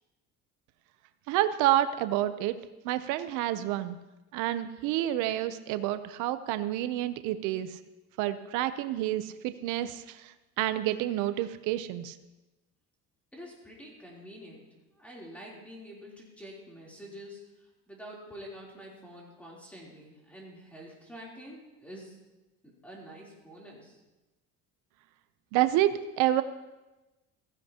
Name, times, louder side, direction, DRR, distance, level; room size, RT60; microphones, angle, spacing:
voice 1, 1.3-2.6 2.8-4.0 4.3-7.8 8.2-12.2 25.5-26.4, right 13 dB, 90° right, 11 dB, 0.7 m, -29 dB
voice 2, 13.3-14.7 14.9-22.2 22.6-24.0, equal, 5° left, -4 dB, 3.3 m, -47 dB
15.5 x 15.5 x 2.9 m, 1.1 s
cardioid pair, 155°, 30 cm